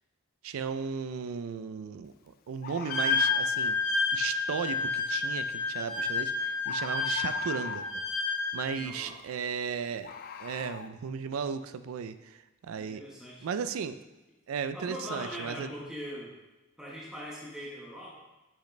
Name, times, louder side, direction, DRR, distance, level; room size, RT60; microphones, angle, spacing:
voice 1, 0.4-2.1 2.5-3.8 4.1-8.0 8.5-10.1 10.4-12.4 12.6-13.0 13.4-14.0 14.5-15.7, right 6 dB, 85° right, 12 dB, 0.4 m, -35 dB
Bird, 0.9-1.0 2.6-3.6 5.8-6.1 6.6-8.0 10.0-10.9, left 7 dB, 45° left, 0.3 m, -42 dB
Wind instrument woodwind instrument, 2.9-8.9, left 4 dB, 75° left, 2.1 m, -30 dB
voice 2, 8.8-9.2 12.8-13.5 14.7-16.3 16.8-18.2, equal, 5° right, -7 dB, 1.2 m, -41 dB
6.5 x 5.1 x 3.2 m, 1.1 s
head